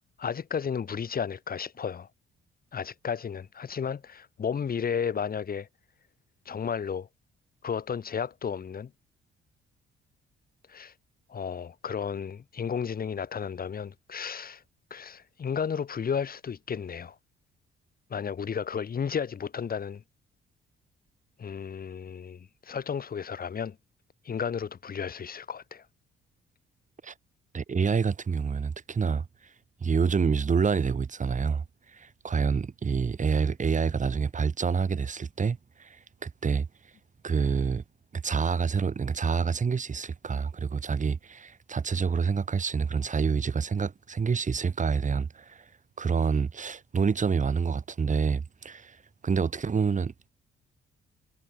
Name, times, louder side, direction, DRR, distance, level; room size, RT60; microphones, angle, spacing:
voice 1, 0.2-2.1 2.7-5.7 6.4-7.1 7.6-8.9 10.7-10.9 11.3-14.6 14.9-17.1 18.1-20.0 21.4-23.8 24.2-25.8, left 7 dB, 50° left, 6.8 m, -33 dB
voice 2, 27.5-29.2 29.8-31.6 31.9-36.7 37.2-37.8 38.1-45.7 46.0-49.0 49.2-50.3, right 5 dB, 40° right, 4.4 m, -27 dB
cardioid pair, 90°, 20 cm